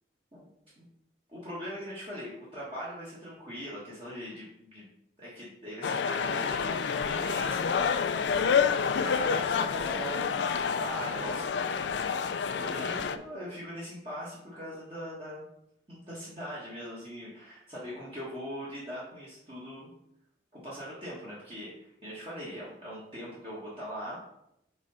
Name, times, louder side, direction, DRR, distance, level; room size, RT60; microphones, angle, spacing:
voice 1, 1.3-4.9 5.2-7.9 8.9-10.5 10.8-11.8 12.5-15.5 15.9-19.9 20.5-24.2, equal, 30° right, -8 dB, 1.5 m, -41 dB
sound 1, 5.8-13.2, left 6 dB, 75° left, 0.4 m, -28 dB
4.9 x 3.9 x 5.4 m, 0.78 s
head